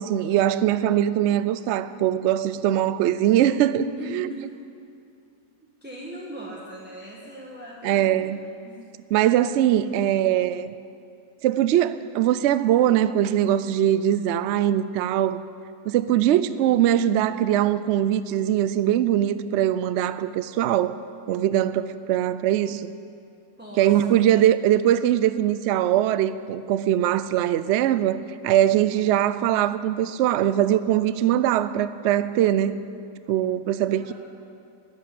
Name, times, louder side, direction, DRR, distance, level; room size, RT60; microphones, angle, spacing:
voice 1, 0.0-4.3 7.8-8.4 9.1-10.7 11.4-15.4 15.9-21.0 21.3-22.9 23.8-32.7 33.3-34.1, right 11 dB, 80° right, 14 dB, 0.6 m, -21 dB
voice 2, 3.9-4.5 5.6-8.8 16.4-16.8 23.6-24.2 33.8-34.1, right 1 dB, 5° right, -4 dB, 1.3 m, -40 dB
11.5 x 8.4 x 9.8 m, 2.5 s
omnidirectional pair, 1.7 m